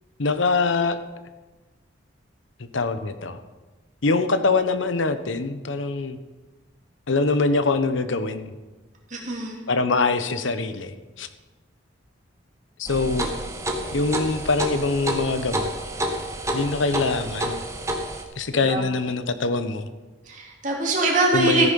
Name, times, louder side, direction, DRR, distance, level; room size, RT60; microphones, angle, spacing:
voice 1, 0.2-1.0 2.6-3.4 4.0-6.2 7.1-8.5 9.7-11.3 12.8-13.3 13.9-15.7 16.5-17.6 18.4-19.9 21.3-21.7, left 3 dB, 75° left, 11 dB, 0.9 m, -23 dB
voice 2, 9.1-9.6 18.6-18.9 20.3-21.7, right 2 dB, 40° right, -2 dB, 2.8 m, -23 dB
sound 1, 12.9-18.2, right 1 dB, 15° right, 1.2 m, -29 dB
14.0 x 9.9 x 5.3 m, 1.2 s
head